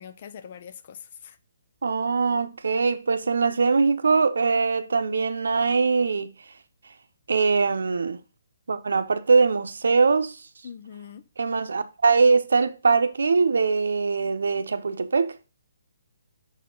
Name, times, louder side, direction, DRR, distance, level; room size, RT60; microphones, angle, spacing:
voice 1, 0.0-1.4 10.6-11.2, left 8 dB, 30° left, 0.4 m, -42 dB
voice 2, 1.8-6.3 7.3-8.2 8.7-10.3 11.4-15.3, right 4 dB, 85° right, 0.8 m, -22 dB
6.3 x 4.2 x 3.8 m
hypercardioid pair, 180°, 0 cm